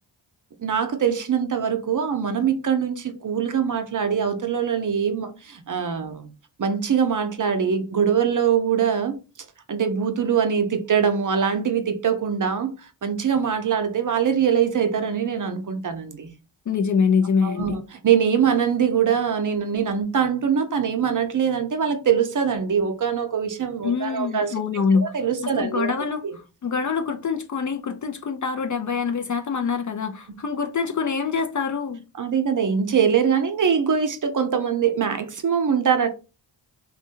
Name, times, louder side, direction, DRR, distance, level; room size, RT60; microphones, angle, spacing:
voice 1, 0.6-6.3 6.6-9.2 9.7-16.3 17.4-24.5 24.9-26.4 32.2-36.1, right 7 dB, 40° right, 0.6 m, -23 dB
voice 2, 16.7-17.8 23.8-25.1 25.5-26.2 26.6-32.0, left 5 dB, 40° left, 0.4 m, -24 dB
2.6 x 2.2 x 2.7 m
cardioid pair, 40°, 49 cm